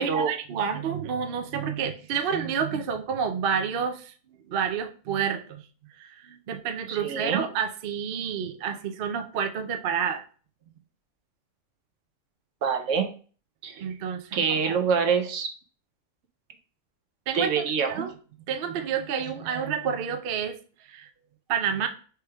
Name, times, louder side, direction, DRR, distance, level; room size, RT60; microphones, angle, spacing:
voice 1, 0.0-4.1 4.5-5.6 6.0-10.2 13.8-14.8 17.3-17.5 17.9-18.1 18.5-20.6 20.9-21.1 21.5-21.9, right 7 dB, 55° right, 7 dB, 0.7 m, -29 dB
voice 2, 6.9-7.4 12.6-13.1 13.6-13.8 14.3-15.5 17.3-18.0, right 6 dB, 80° right, 5 dB, 1.1 m, -25 dB
4.6 x 3.2 x 3.4 m, 0.39 s
omnidirectional pair, 1.3 m